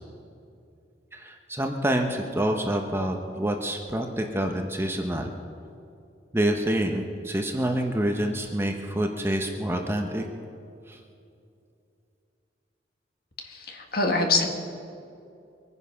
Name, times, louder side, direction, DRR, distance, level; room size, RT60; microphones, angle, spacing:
voice 1, 1.1-5.3 6.3-10.2 10.9-11.0, right 1 dB, 15° right, 3 dB, 0.9 m, -27 dB
voice 2, 13.4-14.5, left 3 dB, 55° left, 3 dB, 1.8 m, -25 dB
23.0 x 9.9 x 5.7 m, 2.5 s
head